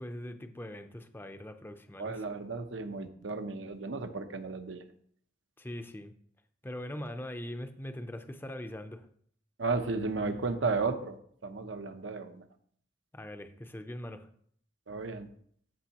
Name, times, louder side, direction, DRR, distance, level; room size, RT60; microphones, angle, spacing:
voice 1, 0.0-2.2 5.6-6.1 6.6-9.1 13.1-14.3, left 1 dB, 10° left, 8 dB, 0.6 m, -41 dB
voice 2, 2.0-4.8 9.6-11.2 11.4-12.4 14.9-15.3, right 4 dB, 80° right, 8 dB, 0.8 m, -34 dB
14.0 x 5.4 x 2.9 m, 0.63 s
head